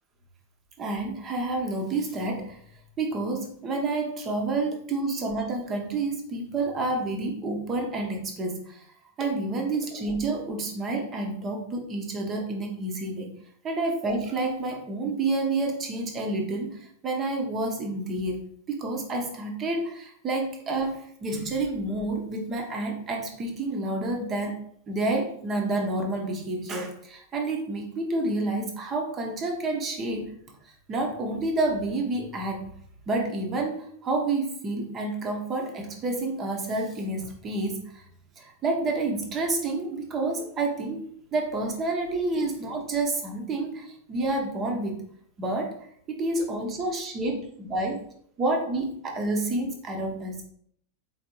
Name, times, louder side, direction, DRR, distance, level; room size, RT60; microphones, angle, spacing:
voice 1, 0.8-2.6 3.0-8.8 9.2-13.3 13.6-18.4 18.7-24.6 24.9-30.3 30.9-32.7 33.1-38.0 38.4-45.0 45.4-45.8 46.1-48.0 48.4-50.4, right 2 dB, 25° right, 2 dB, 1.0 m, -29 dB
4.4 x 3.4 x 3.0 m, 0.65 s
figure-of-eight pair, 90°, 0 cm